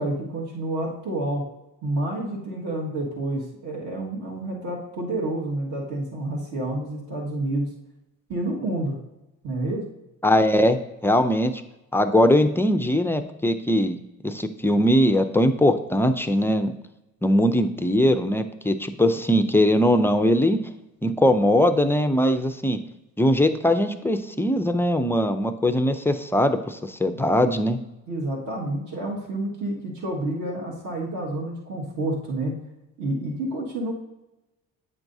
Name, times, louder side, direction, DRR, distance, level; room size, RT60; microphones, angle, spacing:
voice 1, 0.0-1.4 1.8-7.7 8.3-9.0 9.4-9.9 28.1-32.6 33.0-33.9, right 1 dB, 60° right, -2 dB, 1.7 m, -29 dB
voice 2, 10.2-10.8 11.0-11.5 11.9-14.0 14.2-16.7 17.2-20.6 21.0-22.8 23.2-27.8, left 1 dB, 5° left, 7 dB, 0.4 m, -20 dB
9.0 x 5.9 x 2.7 m, 0.96 s
cardioid pair, 100°, 36 cm